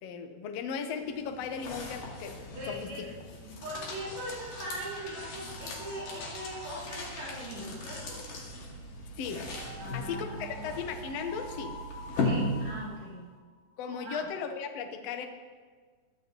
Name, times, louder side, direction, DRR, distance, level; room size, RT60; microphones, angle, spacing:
voice 1, 0.0-3.0 9.2-9.4 9.9-11.8 13.8-15.3, left 6 dB, 85° left, 5 dB, 1.4 m, -37 dB
sound 1, 0.9-13.1, left 2 dB, 60° left, 3.5 m, -38 dB
voice 2, 2.5-3.1 3.4-8.2 9.8-10.6 12.2-13.3 14.0-14.3, right 1 dB, 70° right, -9 dB, 5.6 m, -41 dB
sound 2, 4.4-8.2 9.3-14.2, right 1 dB, 40° right, 3.0 m, -48 dB
21.5 x 13.0 x 3.0 m, 1.5 s
omnidirectional pair, 4.5 m